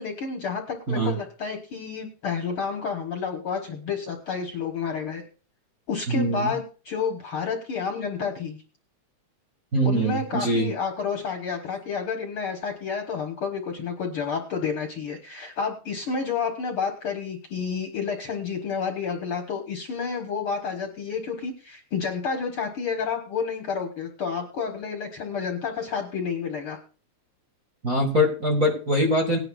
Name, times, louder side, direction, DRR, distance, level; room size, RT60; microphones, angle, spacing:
voice 1, 0.0-5.2 5.9-8.6 9.8-26.8, left 5 dB, 55° left, 4 dB, 1.7 m, -30 dB
voice 2, 6.1-6.5 9.7-10.7 27.8-29.4, equal, 30° right, 0 dB, 1.7 m, -23 dB
19.0 x 9.9 x 2.3 m, 0.36 s
omnidirectional pair, 3.5 m